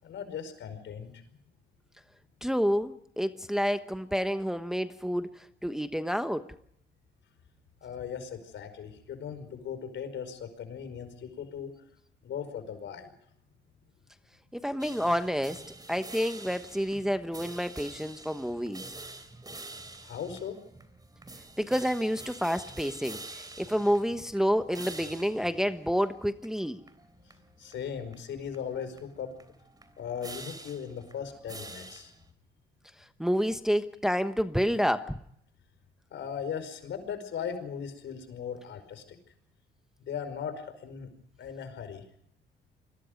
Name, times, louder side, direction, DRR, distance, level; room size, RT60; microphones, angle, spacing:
voice 1, 0.0-1.2 7.8-11.7 12.2-13.1 20.0-20.6 27.6-29.3 30.0-32.1 36.1-39.2 40.0-41.1 41.4-42.0, left 7 dB, 70° left, 9 dB, 5.1 m, -38 dB
voice 2, 2.4-6.5 14.5-15.6 15.9-18.8 21.6-26.8 33.2-35.2, equal, ahead, 9 dB, 1.1 m, -29 dB
sound 1, 14.8-32.3, right 2 dB, 20° right, 3.4 m, -47 dB
29.5 x 22.0 x 5.2 m, 0.70 s
cardioid pair, 90°, 20 cm